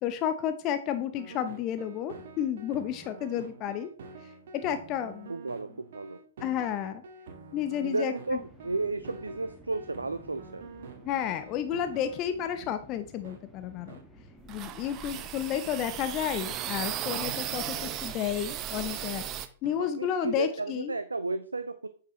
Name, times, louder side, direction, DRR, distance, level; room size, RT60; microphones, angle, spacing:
voice 1, 0.0-3.9 4.5-5.3 6.4-7.0 7.5-8.1 11.1-14.0 14.5-19.2 19.6-20.9, left 10 dB, 30° left, 9 dB, 0.7 m, -31 dB
sound 1, 1.1-12.7 13.2-13.4 13.9-14.0 14.5-14.6 15.1-15.3 15.8-15.9 16.5-16.6 17.3-17.4 18.0-18.2 18.8-18.9 19.6-19.8, right 4 dB, 55° right, 1.4 m, -47 dB
voice 2, 5.3-6.2 7.8-10.6 19.8-21.9, right 3 dB, 80° right, 12 dB, 0.5 m, -33 dB
sound 2, 8.3-18.9, equal, ahead, 1.4 m, -54 dB
sound 3, 14.4-19.5, right 11 dB, 30° right, 0.6 m, -36 dB
9.0 x 6.7 x 3.1 m, 0.43 s
figure-of-eight pair, 105°, 0 cm